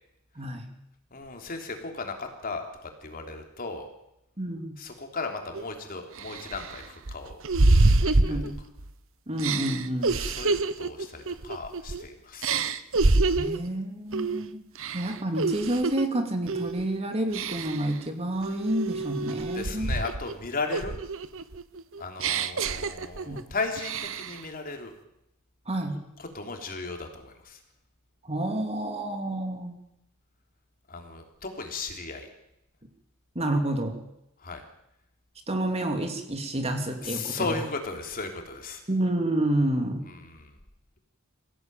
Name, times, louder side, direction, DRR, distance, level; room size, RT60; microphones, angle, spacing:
voice 1, 0.4-0.7 4.4-4.8 8.2-8.6 9.3-10.2 13.4-14.6 14.9-19.9 23.3-23.4 25.7-26.0 28.2-29.8 33.3-34.0 35.5-37.5 38.9-40.1, right 1 dB, 30° right, 5 dB, 2.9 m, -29 dB
voice 2, 1.1-3.9 4.8-7.4 7.7-8.4 10.1-12.6 19.5-21.0 22.0-24.9 26.2-27.6 30.9-32.3 34.4-34.6 37.0-38.8 40.1-40.6, left 3 dB, 40° left, 4 dB, 3.4 m, -36 dB
sound 1, 5.5-5.6 6.2-8.9 9.4-12.0 12.4-13.7 14.1-14.4 14.8-16.1 16.5-16.8 17.3-17.9 18.4-20.3 20.7-23.4 23.8-24.4, right 3 dB, 65° right, 1.1 m, -26 dB
24.5 x 16.0 x 9.1 m, 0.84 s
head